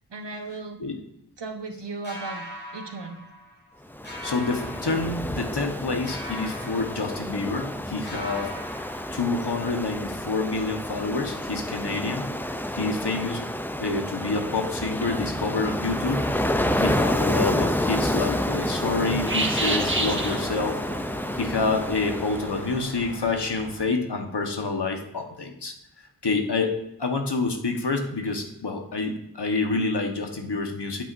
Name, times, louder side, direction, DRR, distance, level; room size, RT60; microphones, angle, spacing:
voice 1, 0.1-0.8 1.4-2.5 2.7-3.2, right 3 dB, 85° right, 4 dB, 1.1 m, -36 dB
sound 1, 2.0-3.8 4.0-5.7 6.0-7.8 8.0-9.7, left 1 dB, 25° left, 2.8 m, -40 dB
Ocean, 3.9-23.0, left 1 dB, 5° left, 0.4 m, -29 dB
voice 2, 4.2-8.5 9.1-13.4 13.8-16.3 16.7-20.8 21.4-25.7 26.2-31.0, left 3 dB, 75° left, 3 dB, 1.3 m, -28 dB
sound 2, 15.9-23.8, right 2 dB, 30° right, 1.3 m, -34 dB
9.0 x 8.2 x 2.6 m, 0.81 s
wide cardioid pair, 50°, 41 cm